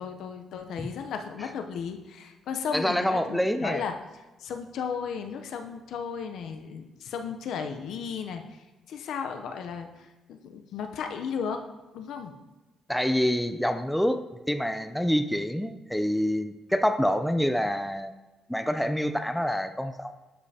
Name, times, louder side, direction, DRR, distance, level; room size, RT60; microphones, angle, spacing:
voice 1, 0.0-4.0 4.4-8.4 8.9-11.6 11.9-12.3, left 6 dB, 75° left, 6 dB, 0.7 m, -35 dB
voice 2, 2.7-3.8 12.9-14.2 14.5-18.1 18.5-20.1, equal, 5° left, 9 dB, 0.4 m, -26 dB
11.5 x 5.1 x 2.8 m, 1.1 s
cardioid pair, 90°, 0 cm